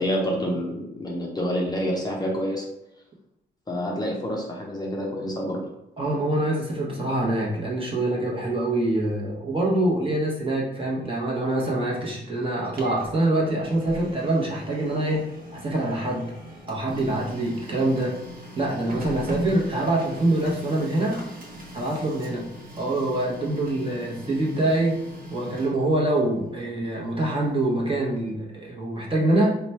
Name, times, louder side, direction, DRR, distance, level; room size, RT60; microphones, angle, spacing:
voice 1, 0.0-2.6 3.7-5.7, equal, 20° left, -2 dB, 0.6 m, -27 dB
voice 2, 6.0-15.2 15.5-16.3 16.7-18.1 18.5-21.2 21.7-22.5 22.8-25.0 25.3-29.5, right 1 dB, 25° right, -3 dB, 1.1 m, -25 dB
Printer, 12.5-28.3, equal, 45° right, 0.9 m, -40 dB
3.0 x 2.3 x 4.1 m, 0.87 s
cardioid pair, 90°, 20 cm